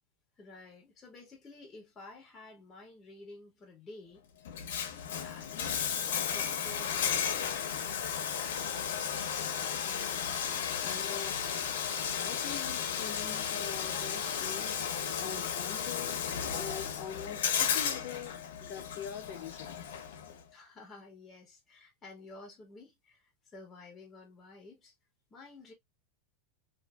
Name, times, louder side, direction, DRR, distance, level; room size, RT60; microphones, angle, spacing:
voice 1, 0.4-8.4 20.5-24.9 25.3-25.7, left 3 dB, 15° left, 0.9 m, -52 dB
Bathtub (filling or washing), 4.4-20.4, left 8 dB, 85° left, 0.6 m, -34 dB
voice 2, 9.8-11.4 12.1-19.8, left 8 dB, 45° left, 0.7 m, -44 dB
2.5 x 2.5 x 2.2 m
supercardioid pair, 160°, 0 cm